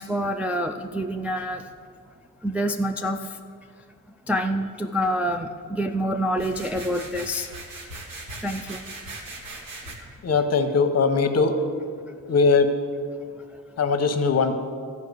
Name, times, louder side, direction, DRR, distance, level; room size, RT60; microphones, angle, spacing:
voice 1, 0.0-1.7 2.4-3.4 4.3-7.6 8.4-8.8 9.8-9.9 13.4-13.6, equal, 5° right, 3 dB, 0.4 m, -27 dB
sound 1, 6.3-10.0, right 2 dB, 75° right, 2.0 m, -39 dB
voice 2, 10.2-11.5 12.3-12.7 13.8-14.5, left 4 dB, 45° left, 7 dB, 1.1 m, -20 dB
13.5 x 5.6 x 8.1 m, 2.3 s
cardioid pair, 110°, 34 cm